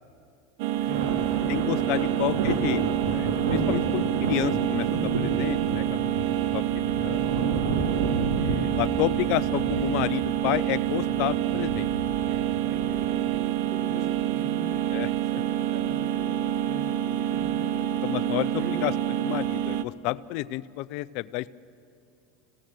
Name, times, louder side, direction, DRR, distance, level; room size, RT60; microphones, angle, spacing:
sound 1, 0.6-19.8, right 12 dB, 65° right, 0.8 m, -27 dB
voice 1, 0.8-2.1 12.3-15.4 15.7-17.8 18.6-18.8, right 2 dB, 50° right, 2 dB, 6.0 m, -42 dB
sound 2, 0.9-15.1 15.6-15.8 16.8-17.0 17.7-17.8 19.3-19.4, right 3 dB, 85° right, 2.9 m, -32 dB
voice 2, 1.5-6.2 6.5-7.3 8.4-11.9 14.9-15.1 18.0-18.9 19.2-21.6, left 17 dB, 60° left, 17 dB, 0.5 m, -30 dB
27.5 x 17.0 x 7.8 m, 2.7 s
supercardioid pair, 120°, 0 cm